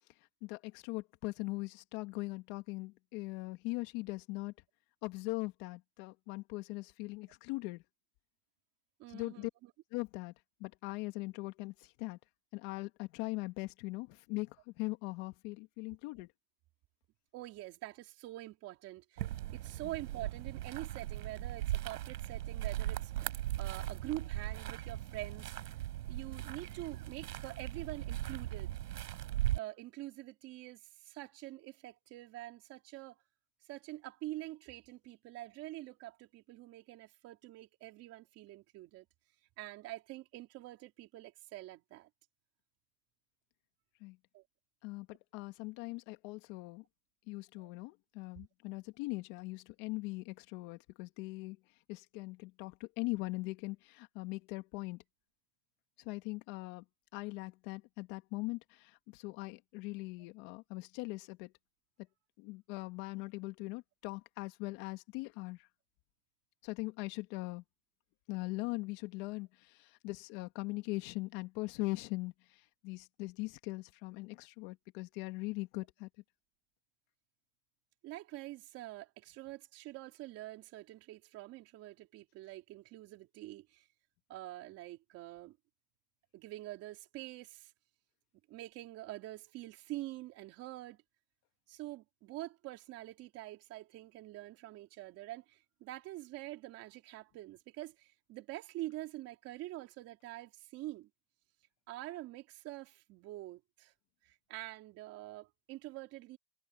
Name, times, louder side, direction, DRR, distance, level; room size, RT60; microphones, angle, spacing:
voice 1, 0.4-4.5 5.0-7.8 9.1-9.5 9.9-10.3 10.6-12.2 12.5-16.3 44.0-44.2 44.8-46.8 47.3-51.6 51.9-55.0 56.0-56.8 57.1-61.5 62.4-65.7 66.6-67.6 68.3-76.1, left 23 dB, 40° left, 2.3 m, -41 dB
voice 2, 9.0-9.7 17.3-23.3 23.6-25.5 26.1-28.7 29.5-33.2 33.7-39.0 39.6-42.1 44.3-44.4 47.6-47.7 78.0-83.9 84.3-85.6 86.3-87.7 88.5-91.0 91.7-101.1 101.9-103.9 104.2-106.4, right 17 dB, 30° right, 3.5 m, -46 dB
sound 1, 19.2-29.6, right 13 dB, 80° right, 5.5 m, -38 dB
supercardioid pair, 160°, 46 cm